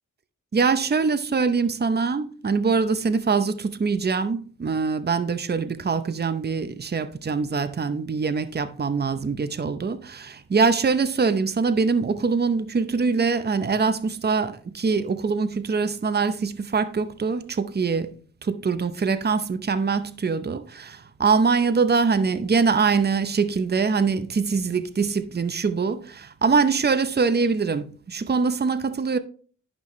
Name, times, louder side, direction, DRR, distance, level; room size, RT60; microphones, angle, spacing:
voice 1, 0.5-18.1 18.4-29.2, right 5 dB, 30° right, 0.7 m, -23 dB
11.0 x 5.7 x 3.1 m
cardioid pair, 65°, 32 cm